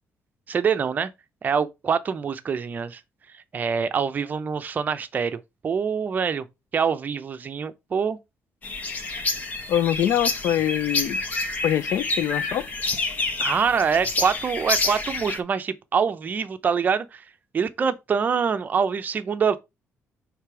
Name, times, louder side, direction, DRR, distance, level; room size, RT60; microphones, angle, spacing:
voice 1, 0.5-1.1 1.4-3.0 3.5-6.5 6.7-8.2 13.4-17.2 17.5-19.6, right 6 dB, 35° right, 0.6 m, -25 dB
sound 1, 8.6-15.4, left 3 dB, 30° left, 1.0 m, -28 dB
voice 2, 9.7-11.2 11.6-12.7, left 11 dB, 70° left, 0.5 m, -24 dB
6.5 x 3.3 x 4.7 m
cardioid pair, 150°, 5 cm